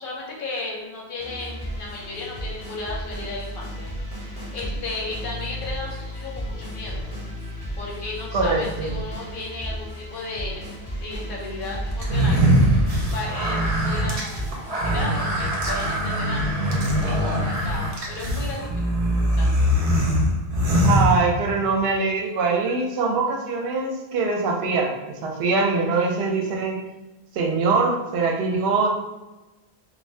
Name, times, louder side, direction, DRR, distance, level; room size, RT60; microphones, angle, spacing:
voice 1, 0.0-3.9 4.5-7.1 7.8-10.7 11.0-12.4 12.7-12.9 13.1-14.5 14.8-16.6 17.0-18.7 19.3-19.7 26.0-26.6, left 2 dB, 55° left, -3 dB, 0.9 m, -34 dB
sound 1, 1.2-18.0, equal, 15° right, 1.5 m, -34 dB
voice 2, 8.3-8.9 20.8-26.8 27.3-28.9, right 4 dB, 75° right, 0 dB, 0.8 m, -23 dB
sound 2, 12.0-21.7, equal, 45° right, 0.5 m, -22 dB
2.6 x 2.2 x 3.2 m, 1.1 s
omnidirectional pair, 1.1 m